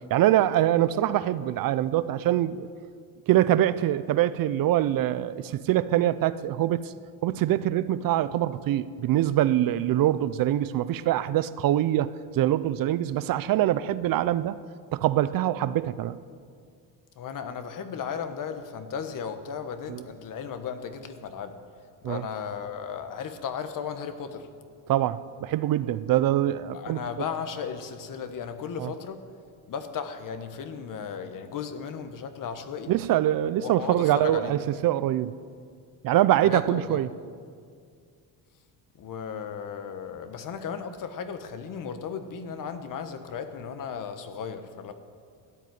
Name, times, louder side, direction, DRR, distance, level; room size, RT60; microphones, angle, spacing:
voice 1, 0.1-2.7 3.3-6.9 7.2-14.6 14.9-16.2 19.9-20.0 22.0-22.2 24.9-27.0 28.8-28.9 32.9-35.3 36.0-37.1, right 13 dB, 55° right, 16 dB, 0.5 m, -24 dB
voice 2, 17.1-21.6 22.0-24.5 26.7-29.2 29.7-32.9 33.6-34.6 36.4-37.0 39.0-44.9, left 7 dB, 50° left, 9 dB, 1.3 m, -35 dB
13.5 x 9.3 x 9.2 m, 2.2 s
cardioid pair, 125°, 41 cm